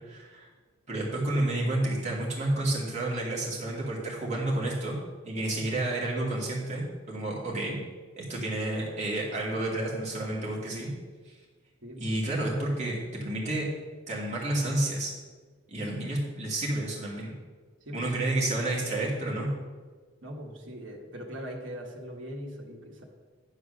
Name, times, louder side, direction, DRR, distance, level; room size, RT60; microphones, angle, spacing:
voice 1, 0.1-0.5 0.9-5.0 5.2-7.8 8.2-10.9 11.3-11.4 12.0-13.7 14.1-15.1 15.7-17.3 17.9-19.5, right 1 dB, 40° right, -4 dB, 2.5 m, -30 dB
voice 2, 11.8-12.1 17.8-18.3 20.2-23.0, equal, 70° right, -1 dB, 1.7 m, -41 dB
10.0 x 4.7 x 6.4 m, 1.4 s
head